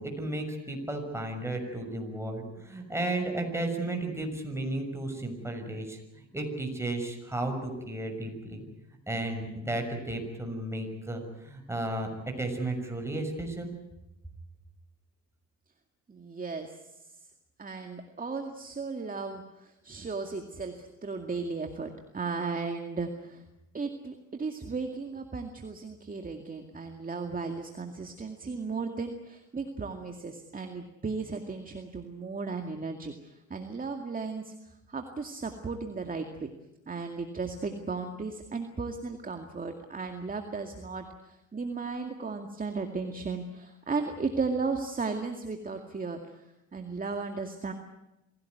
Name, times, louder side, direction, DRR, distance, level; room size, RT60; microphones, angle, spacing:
voice 1, 0.0-6.0 6.3-8.6 9.1-13.7, right 2 dB, 10° right, 3 dB, 6.4 m, -33 dB
voice 2, 16.1-16.8 17.1-17.2 17.6-23.4 23.7-36.5 36.9-46.4 46.7-47.7, right 4 dB, 30° right, 5 dB, 2.2 m, -35 dB
25.5 x 17.0 x 9.4 m, 0.93 s
cardioid pair, 90°, 30 cm